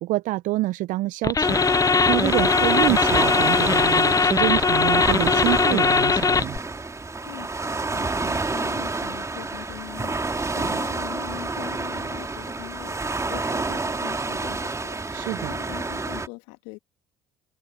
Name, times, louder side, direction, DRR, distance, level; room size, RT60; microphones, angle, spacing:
voice 1, 0.0-1.6 2.1-6.6 15.1-15.5, right 18 dB, 60° right, 0.8 m, -26 dB
sound 1, 1.2-6.6, left 5 dB, 25° left, 0.8 m, -20 dB
Waves surf, 1.4-16.3, right 3 dB, 20° right, 2.9 m, -29 dB
voice 2, 7.2-16.8, left 29 dB, 70° left, 2.2 m, -42 dB
hypercardioid pair, 55°, 15 cm